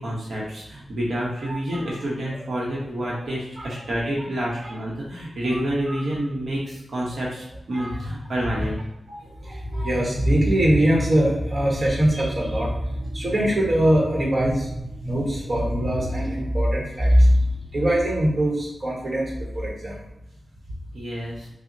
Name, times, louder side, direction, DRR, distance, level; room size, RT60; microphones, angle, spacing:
voice 1, 0.0-8.8 20.9-21.5, right 1 dB, 65° right, -5 dB, 0.8 m, -28 dB
voice 2, 7.7-8.1 8.5-8.7 9.1-17.4 17.7-20.0, equal, 35° right, -3 dB, 1.1 m, -22 dB
5.7 x 2.0 x 2.6 m, 0.88 s
wide cardioid pair, 115°, 0 cm